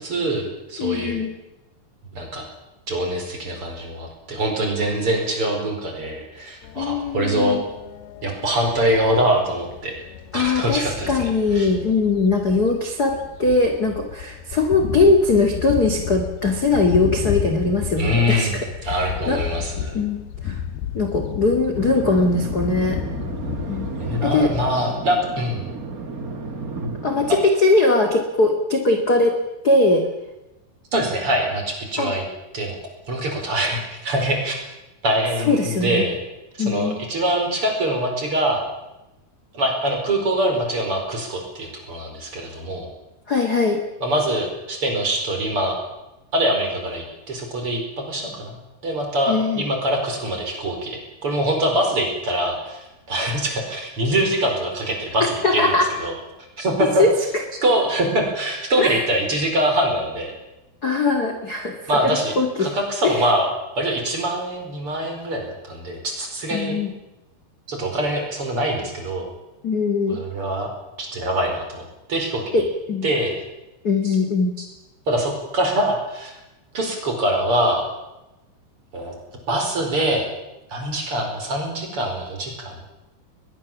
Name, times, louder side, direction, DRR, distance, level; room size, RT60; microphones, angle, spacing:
voice 1, 0.0-1.2 2.1-2.5 2.9-7.6 8.2-10.0 10.3-11.7 17.9-20.0 24.0-25.6 30.9-32.2 32.5-32.8 33.1-34.6 35.0-36.2 36.5-38.6 39.5-42.9 44.0-45.8 46.3-48.6 48.8-55.7 56.0-56.2 56.6-57.0 57.6-60.4 61.9-62.3 62.6-63.5 63.8-66.7 67.7-69.3 70.1-70.7 71.0-72.4 73.0-73.3 74.0-74.2 75.1-76.4 76.7-77.8 78.9-79.1 79.5-80.3 80.7-82.8, right 1 dB, 30° right, 3 dB, 5.3 m, -24 dB
voice 2, 0.8-1.3 6.7-7.7 10.3-19.4 19.9-20.6 20.9-23.0 23.7-23.9 24.2-24.5 27.0-29.4 29.6-30.0 32.0-32.1 35.5-36.1 36.6-37.0 43.3-43.8 49.3-49.7 55.2-55.9 56.8-57.1 58.8-59.0 60.8-61.7 62.0-62.7 63.0-63.2 66.5-66.9 69.6-70.2 72.5-73.1 73.8-74.5, left 3 dB, 40° left, 4 dB, 1.5 m, -20 dB
sound 1, 6.6-24.7, left 8 dB, 70° left, 2.7 m, -32 dB
sound 2, 21.7-27.4, right 3 dB, 65° right, 0.8 m, -32 dB
21.5 x 21.0 x 7.4 m, 0.98 s
omnidirectional pair, 5.2 m